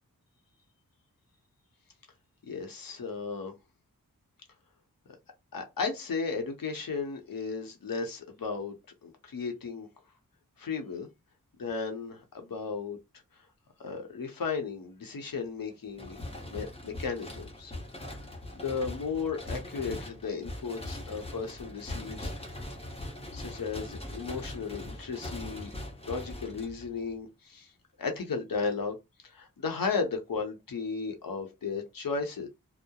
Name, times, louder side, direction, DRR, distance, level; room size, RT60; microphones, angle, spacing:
voice 1, 2.4-3.5 5.5-8.8 9.0-9.9 10.6-11.1 11.6-13.0 13.3-13.5 13.8-16.2 16.5-17.7 18.5-22.5 23.3-25.7 26.0-27.7 28.0-29.0 29.2-32.5, left 5 dB, 75° left, 0.8 m, -35 dB
sound 1, 15.9-27.1, left 1 dB, 15° left, 0.7 m, -41 dB
2.8 x 2.0 x 2.3 m
wide cardioid pair, 85°, 34 cm